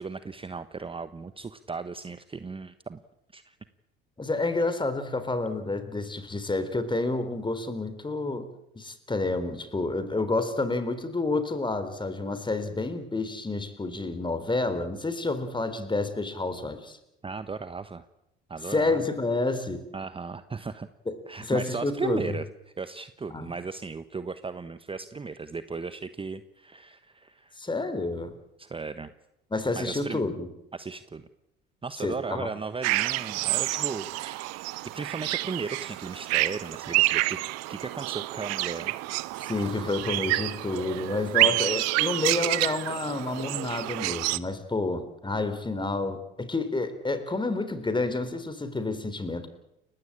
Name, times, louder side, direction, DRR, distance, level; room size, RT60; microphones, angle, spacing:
voice 1, 0.0-3.0 3.3-3.5 17.2-18.1 18.5-19.0 19.9-20.9 21.3-22.5 22.8-27.6 28.6-29.1 29.7-30.2 30.7-31.3 31.8-34.4 34.8-37.4 37.7-38.9 41.4-41.6, right 4 dB, 20° right, 12 dB, 1.1 m, -36 dB
voice 2, 4.2-8.5 8.8-17.0 18.6-19.9 21.1-21.2 21.4-22.4 23.3-23.6 27.6-28.3 29.5-30.5 32.0-32.5 39.5-49.5, left 2 dB, 15° left, 11 dB, 3.8 m, -29 dB
sound 1, 32.8-44.4, right 20 dB, 60° right, 1.0 m, -28 dB
30.0 x 16.0 x 8.8 m, 0.85 s
hypercardioid pair, 65°, 30 cm